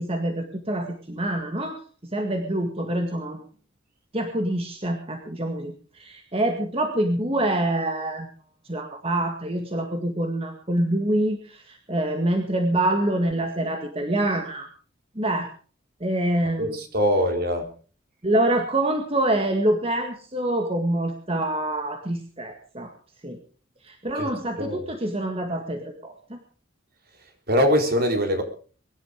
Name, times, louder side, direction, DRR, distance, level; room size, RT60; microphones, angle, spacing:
voice 1, 0.0-1.8 2.1-3.4 4.1-8.3 8.7-14.7 15.2-15.5 16.0-16.8 18.2-22.9 23.2-23.4 23.8-26.4, right 1 dB, 30° right, 4 dB, 2.0 m, -26 dB
voice 2, 16.6-17.7 24.1-24.3 24.6-24.9 27.5-28.4, equal, 50° right, 5 dB, 4.0 m, -22 dB
23.0 x 11.5 x 5.1 m, 0.41 s
head